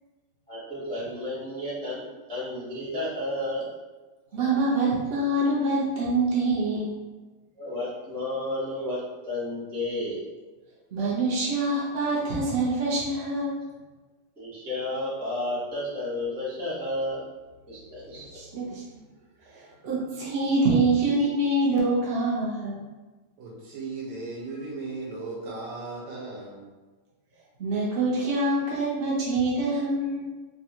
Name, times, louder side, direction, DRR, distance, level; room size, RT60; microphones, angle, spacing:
voice 1, 0.5-3.7 7.6-10.3 14.4-17.2 17.7-18.4, left 1 dB, 5° left, -10 dB, 0.5 m, -32 dB
voice 2, 4.3-6.9 10.9-13.5 18.3-18.8 19.5-22.8 27.6-30.3, right 2 dB, 60° right, -6 dB, 0.6 m, -25 dB
voice 3, 23.4-26.7 27.7-27.8, right 3 dB, 75° right, -4 dB, 1.5 m, -37 dB
3.6 x 2.3 x 2.8 m, 1.2 s
omnidirectional pair, 2.0 m